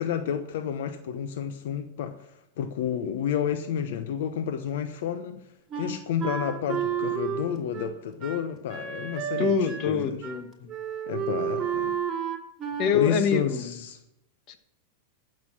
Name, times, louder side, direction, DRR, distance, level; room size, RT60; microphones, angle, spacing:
voice 1, 0.0-5.5 5.8-9.5 9.8-10.2 11.1-12.0 12.9-14.0, left 8 dB, 70° left, 0.9 m, -30 dB
Wind instrument woodwind instrument, 5.7-10.0 10.2-10.4 10.7-13.0, right 8 dB, 20° right, 2.5 m, -31 dB
voice 2, 9.4-10.7 12.8-13.8 14.5-14.6, left 6 dB, 45° left, 1.5 m, -25 dB
15.0 x 6.6 x 6.2 m
supercardioid pair, 135°, 0 cm